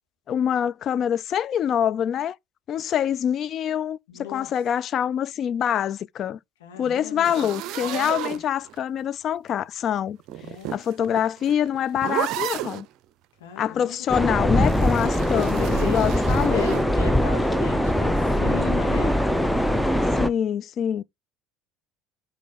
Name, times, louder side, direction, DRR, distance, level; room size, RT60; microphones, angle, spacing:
voice 1, 0.3-2.4 2.7-6.4 6.8-10.2 10.7-12.9 13.6-16.8 20.1-21.0, left 9 dB, 45° left, 0.3 m, -25 dB
voice 2, 4.1-4.5 6.6-8.4 10.4-10.8 11.1-11.2 13.4-14.2 15.3-16.0 16.5-19.2, left 7 dB, 75° left, 2.7 m, -37 dB
sound 1, 7.2-9.0 10.2-12.9 14.6-16.9, right 14 dB, 60° right, 0.5 m, -33 dB
sound 2, 14.1-20.3, equal, 5° left, 0.7 m, -22 dB
6.3 x 4.2 x 4.0 m
hypercardioid pair, 70°, 0 cm